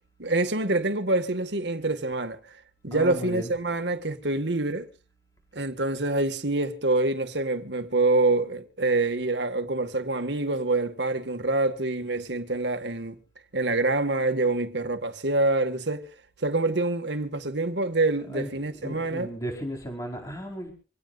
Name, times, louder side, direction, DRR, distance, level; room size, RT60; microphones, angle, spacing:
voice 1, 0.2-2.4 2.8-4.9 5.5-13.2 13.5-16.1 16.4-19.3, right 2 dB, 80° right, 2.0 m, -26 dB
voice 2, 2.9-3.5 18.3-20.7, equal, 20° left, 4.6 m, -35 dB
25.5 x 18.0 x 2.6 m
head